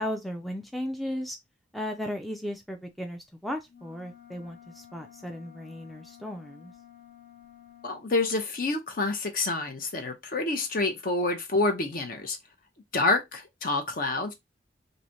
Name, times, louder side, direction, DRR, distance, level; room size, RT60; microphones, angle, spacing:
voice 1, 0.0-1.4 1.7-6.7, left 1 dB, ahead, 0.3 m, -35 dB
sound 1, 3.7-8.1, left 10 dB, 70° left, 1.0 m, -52 dB
voice 2, 7.8-12.4 12.9-14.3, left 2 dB, 50° left, 0.7 m, -28 dB
3.1 x 2.6 x 2.6 m
head